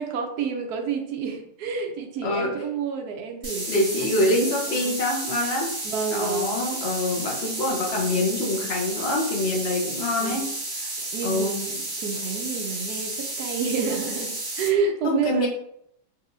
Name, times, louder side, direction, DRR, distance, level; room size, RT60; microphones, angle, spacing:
voice 1, 0.0-5.0 5.8-6.6 10.2-10.5 11.1-15.5, right 5 dB, 70° right, 4 dB, 1.1 m, -29 dB
voice 2, 2.2-2.5 3.7-5.7 6.1-10.5 10.8-10.9 11.2-11.6 15.0-15.5, left 1 dB, 45° left, -2 dB, 1.0 m, -25 dB
sound 1, 3.4-14.7, right 2 dB, 50° right, 1.9 m, -32 dB
4.1 x 3.1 x 2.6 m, 0.73 s
omnidirectional pair, 1.9 m